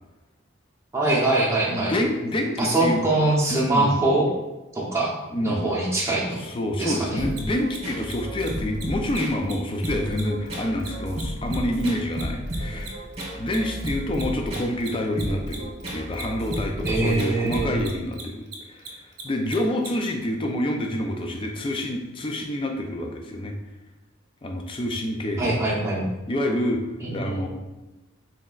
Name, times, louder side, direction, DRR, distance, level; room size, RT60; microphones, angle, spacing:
voice 1, 0.9-1.9 2.6-4.3 4.7-6.4 6.7-7.2 12.7-12.8 16.8-17.7 25.4-26.1 27.0-27.5, right 2 dB, 15° right, -4 dB, 0.8 m, -23 dB
voice 2, 1.7-3.0 3.5-4.0 5.3-5.7 6.4-13.0 13.4-23.6 24.4-25.6 26.3-26.9 27.1-27.5, left 1 dB, 25° left, 3 dB, 0.4 m, -27 dB
sound 1, 7.2-18.0, equal, 30° right, 1.2 m, -33 dB
Mechanisms, 7.3-7.4 7.7-7.8 8.0-8.1 8.4-8.5 8.7-8.8 9.1-9.2 9.4-9.5 9.8-12.6 12.8-19.9, right 7 dB, 55° right, 0.6 m, -39 dB
4.3 x 3.9 x 2.4 m, 1.1 s
head